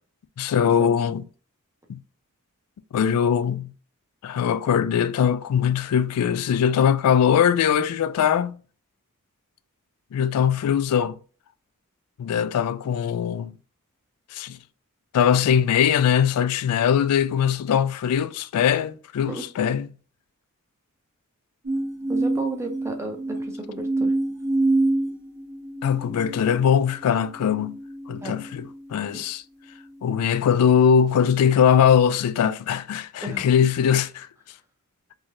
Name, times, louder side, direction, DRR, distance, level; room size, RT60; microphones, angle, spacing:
voice 1, 0.4-1.2 1.9-2.0 2.9-3.7 4.2-8.6 10.1-11.1 12.2-13.5 14.3-14.6 15.1-19.9 25.8-27.8 28.1-29.4 30.0-34.3, left 8 dB, 85° left, 0.3 m, -21 dB
sound 1, 21.6-29.1 29.7-30.2, right 2 dB, 50° right, 1.3 m, -28 dB
voice 2, 22.1-24.1 28.2-28.4 29.1-29.2 33.2-33.4, right 2 dB, 10° right, 0.5 m, -33 dB
3.2 x 2.7 x 2.5 m
head